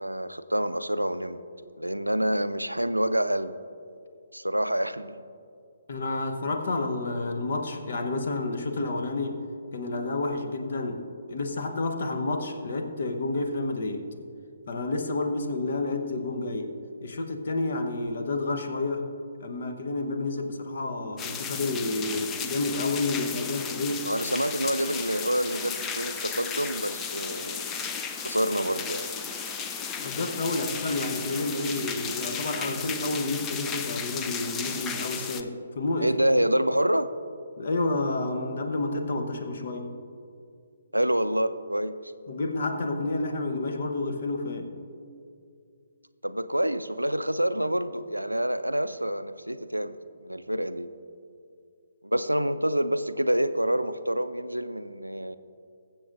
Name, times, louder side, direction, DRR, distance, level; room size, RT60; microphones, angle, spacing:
voice 1, 0.0-1.4 1.8-3.5 4.3-5.2 24.0-27.9 28.2-29.1 36.0-37.1 40.9-42.1 46.2-50.9 52.0-55.4, right 1 dB, 85° right, 12 dB, 0.4 m, -27 dB
voice 2, 5.9-9.4 9.7-11.0 11.3-14.1 14.7-16.7 17.0-19.1 19.4-24.1 30.0-36.1 37.6-39.9 42.3-44.7, left 2 dB, 50° left, 6 dB, 1.0 m, -30 dB
sound 1, 21.2-35.4, left 6 dB, 15° left, 0.4 m, -34 dB
sound 2, 24.3-32.7, left 1 dB, 65° left, 1.5 m, -49 dB
22.0 x 7.5 x 2.5 m, 2.4 s
figure-of-eight pair, 135°, 0 cm